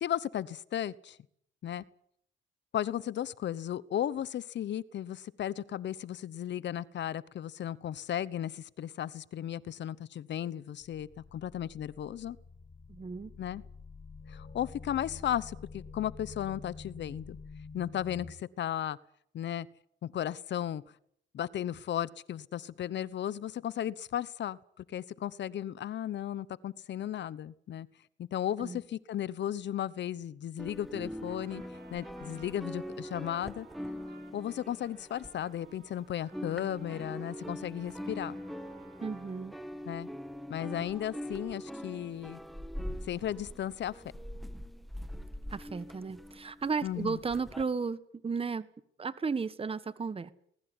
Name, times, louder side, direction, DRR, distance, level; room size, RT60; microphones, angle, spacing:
voice 1, 0.0-1.2 1.6-1.8 2.7-12.4 13.4-13.6 14.3-17.4 17.7-19.0 19.3-19.7 20.0-20.8 21.3-27.9 28.2-31.6 31.9-33.7 34.3-38.4 39.8-40.1 40.5-42.4 43.1-44.0 46.8-47.2, left 11 dB, 65° left, 19 dB, 1.1 m, -35 dB
sound 1, 10.8-18.3, left 4 dB, 45° left, 5.1 m, -48 dB
voice 2, 12.9-13.3 28.6-28.8 39.0-39.5 40.7-40.8 45.5-48.7 49.0-50.3, right 5 dB, 30° right, 15 dB, 1.4 m, -34 dB
sound 2, 30.6-35.9 36.2-47.6, equal, ahead, 1.7 m, -43 dB
Trumpet, 31.3-39.4, right 5 dB, 55° right, 4.4 m, -58 dB
20.5 x 19.5 x 9.8 m, 0.69 s
cardioid pair, 90°, 20 cm